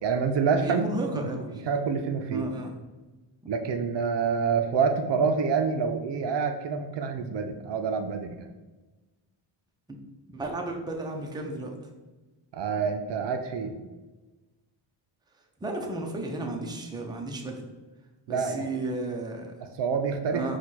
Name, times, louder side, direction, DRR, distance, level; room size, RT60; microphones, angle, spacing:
voice 1, 0.0-0.9 1.1-1.3 1.7-2.5 3.5-8.5 12.5-13.7 18.3-18.7 19.6-20.6, right 5 dB, 60° right, 6 dB, 0.5 m, -27 dB
voice 2, 0.6-1.5 2.3-2.8 10.3-11.7 15.6-17.6 18.3-19.5 20.3-20.6, right 2 dB, 10° right, 1 dB, 0.6 m, -33 dB
4.5 x 2.4 x 4.1 m, 1.2 s
cardioid pair, 80°, 49 cm